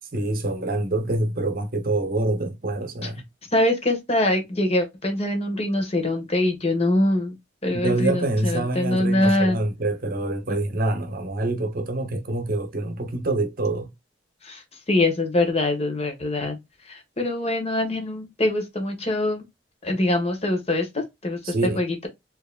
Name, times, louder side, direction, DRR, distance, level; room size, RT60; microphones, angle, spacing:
voice 1, 0.1-3.2 7.7-13.9 21.4-21.8, right 2 dB, 55° right, 0.8 m, -26 dB
voice 2, 3.5-7.4 7.6-9.6 10.5-10.6 14.4-14.6 14.9-16.6 16.9-19.4 19.8-20.9 21.2-21.4 21.7-21.9, left 1 dB, 35° left, 1.3 m, -23 dB
4.6 x 2.9 x 2.2 m
head